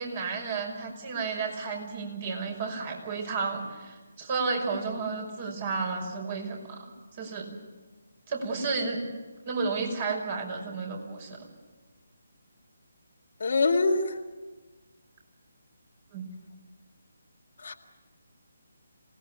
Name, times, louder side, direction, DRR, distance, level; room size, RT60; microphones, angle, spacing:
voice 1, 0.0-6.9 7.2-7.5 8.3-9.0 9.4-11.4 16.1-16.2, right 4 dB, 35° right, 2 dB, 5.7 m, -32 dB
voice 2, 13.4-14.1 17.6-17.7, left 3 dB, 55° left, 3 dB, 1.9 m, -24 dB
27.0 x 19.0 x 7.4 m, 1.3 s
figure-of-eight pair, 150°, 0 cm